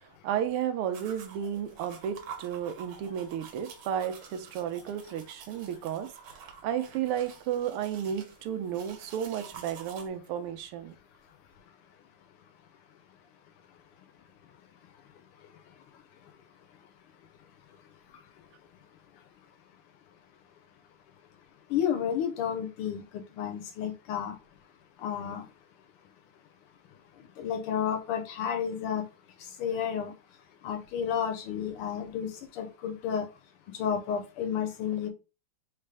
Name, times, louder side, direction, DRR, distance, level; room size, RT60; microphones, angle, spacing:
voice 1, 0.2-11.0, right 9 dB, 85° right, 1.6 m, -33 dB
sound 1, 0.9-10.1, right 7 dB, 70° right, 1.6 m, -49 dB
voice 2, 21.7-24.3 25.0-25.4 27.4-29.0 29.6-30.1 30.6-33.3 33.8-35.1, left 8 dB, 80° left, 1.8 m, -31 dB
4.2 x 3.3 x 3.4 m
omnidirectional pair, 2.4 m